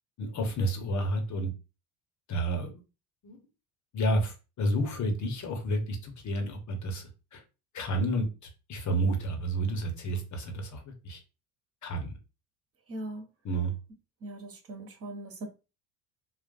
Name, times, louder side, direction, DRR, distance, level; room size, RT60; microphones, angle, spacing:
voice 1, 0.2-1.5 2.3-2.7 3.2-3.4 3.9-7.4 7.7-8.3 8.7-11.2 11.8-12.1 13.4-13.7, right 1 dB, 40° left, 1.1 m, -30 dB
voice 2, 12.9-13.2 14.2-15.5, right 1 dB, 30° right, 1.2 m, -40 dB
4.0 x 2.4 x 2.6 m
hypercardioid pair, 60°, 47 cm